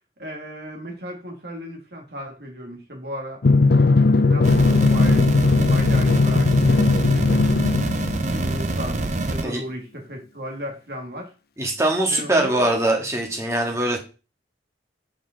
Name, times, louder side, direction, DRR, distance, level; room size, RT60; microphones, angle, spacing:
voice 1, 0.2-3.4 4.2-5.3 5.6-7.4 8.3-11.3 12.1-12.7, equal, 65° right, 2 dB, 2.1 m, -35 dB
Drum, 3.4-8.5, left 3 dB, 60° left, 0.5 m, -18 dB
sound 1, 4.4-9.4, right 2 dB, 45° right, 0.7 m, -26 dB
voice 2, 11.6-14.0, right 1 dB, 15° right, 1 dB, 1.9 m, -22 dB
5.8 x 5.1 x 5.7 m, 0.33 s
head